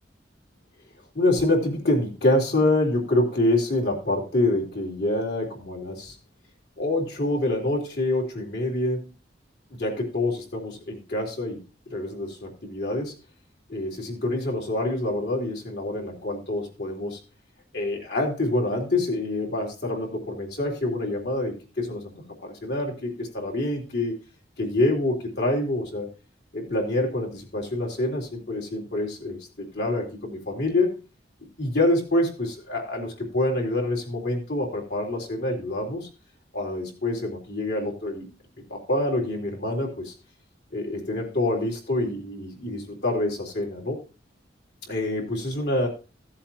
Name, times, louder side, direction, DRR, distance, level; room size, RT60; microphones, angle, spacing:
voice 1, 1.1-6.2 6.8-9.1 9.7-11.6 11.9-13.1 13.7-17.2 17.7-22.2 22.4-24.2 24.6-26.1 26.5-31.0 31.6-36.1 36.5-38.3 38.7-40.1 40.7-44.0 44.9-45.9, left 1 dB, 55° left, -1 dB, 3.6 m, -26 dB
16.0 x 7.6 x 3.0 m, 0.33 s
head